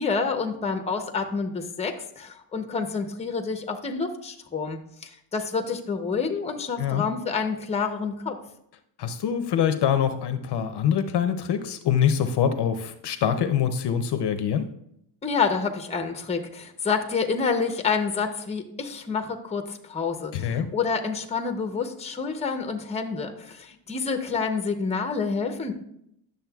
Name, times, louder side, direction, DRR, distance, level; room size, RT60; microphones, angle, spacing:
voice 1, 0.0-8.4 15.2-25.7, left 5 dB, 15° left, 6 dB, 0.7 m, -28 dB
voice 2, 9.0-14.7 20.3-20.7, left 8 dB, 55° left, 9 dB, 0.6 m, -24 dB
10.5 x 6.7 x 2.3 m, 0.74 s
cardioid pair, 125°, 49 cm